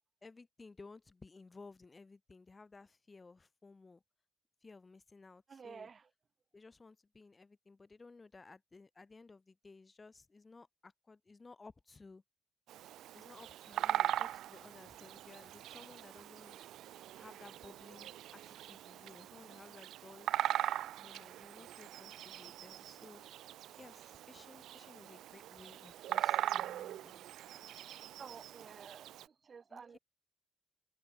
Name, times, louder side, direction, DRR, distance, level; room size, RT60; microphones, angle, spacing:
voice 1, 0.2-4.0 4.6-5.9 6.5-12.2 13.1-16.6 17.2-20.3 21.0-23.2 23.8-27.2 29.7-29.8, left 3 dB, 25° left, 6.5 m, -57 dB
voice 2, 5.5-6.1 28.2-30.0, right 5 dB, 40° right, 2.0 m, -52 dB
Bird vocalization bird call bird song, 12.7-29.3, right 13 dB, 80° right, 0.6 m, -40 dB
cardioid pair, 90°, 0 cm